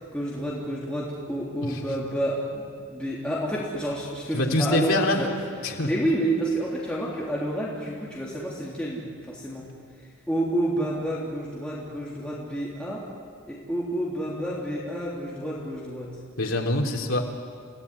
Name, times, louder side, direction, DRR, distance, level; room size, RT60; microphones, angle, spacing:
voice 1, 0.0-2.6 2.9-5.3 5.8-9.7 10.3-13.0 13.5-16.1, right 1 dB, 5° left, -6 dB, 3.5 m, -29 dB
voice 2, 1.6-2.0 4.3-5.2 5.6-5.9 16.4-17.2, left 2 dB, 75° left, 0 dB, 3.6 m, -25 dB
30.0 x 18.0 x 9.9 m, 2.3 s
head